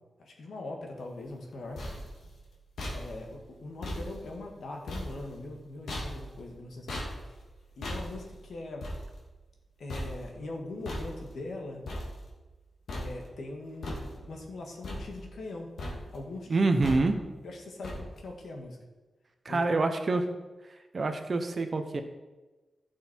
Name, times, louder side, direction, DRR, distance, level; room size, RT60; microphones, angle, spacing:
voice 1, 0.2-1.8 2.9-7.4 7.8-9.0 9.8-11.8 12.9-15.7 16.1-16.6 17.4-18.8 19.5-20.0, left 2 dB, 65° left, 1 dB, 2.0 m, -41 dB
sound 1, 1.4-12.6 12.9-13.5 13.8-14.5 14.8-15.5 15.8-16.3 16.8-17.4 17.8-18.4, left 1 dB, 90° left, 2.4 m, -40 dB
voice 2, 16.5-17.2 19.4-20.3 20.9-22.0, right 3 dB, 35° right, 7 dB, 0.8 m, -26 dB
15.5 x 6.3 x 4.5 m, 1.2 s
wide cardioid pair, 180°, 0 cm